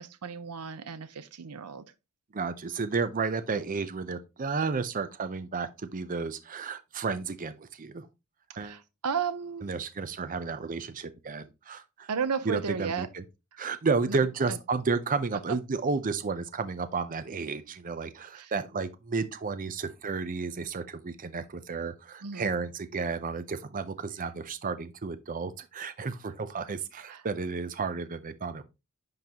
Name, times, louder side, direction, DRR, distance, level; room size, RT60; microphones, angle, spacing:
voice 1, 0.0-1.9 8.6-9.6 12.1-13.1 13.5-13.6 14.1-14.2 14.5-14.6 18.3-18.5 22.2-22.5 27.1-27.2, right 6 dB, 90° right, 0.6 m, -34 dB
voice 2, 2.3-8.1 8.6-8.8 9.6-12.1 12.5-13.2 13.6-28.6, right 4 dB, 35° right, 0.5 m, -32 dB
10.5 x 3.9 x 2.9 m
head